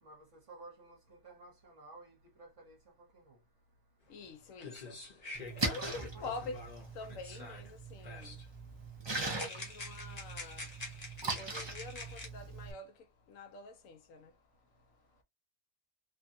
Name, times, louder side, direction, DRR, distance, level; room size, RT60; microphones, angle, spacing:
voice 1, 0.0-2.8 3.1-3.4 5.8-6.3, right 3 dB, 60° right, 1.3 m, -54 dB
voice 2, 4.1-8.5 9.0-14.4 14.7-15.2, left 3 dB, 70° left, 1.0 m, -47 dB
sound 1, 4.2-4.3 4.6-7.7 8.0-8.5 9.1-12.3, left 3 dB, 35° left, 0.9 m, -47 dB
Splash splatter, 5.3-12.7, right 3 dB, 35° right, 0.4 m, -41 dB
3.2 x 2.2 x 2.6 m
omnidirectional pair, 1.5 m